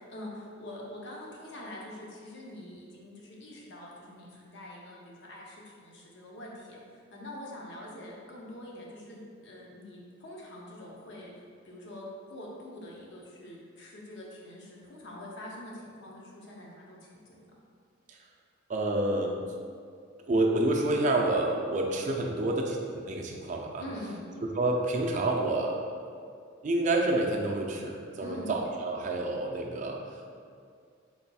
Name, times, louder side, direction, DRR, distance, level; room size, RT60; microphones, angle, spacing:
voice 1, 0.0-11.3 11.6-17.6 23.8-24.2 28.2-28.5, left 1 dB, 60° left, -3 dB, 0.7 m, -44 dB
voice 2, 18.7-19.4 20.3-23.8 24.4-25.8 26.6-30.0, right 2 dB, 40° right, 0 dB, 0.4 m, -28 dB
4.1 x 4.1 x 2.3 m, 2.2 s
head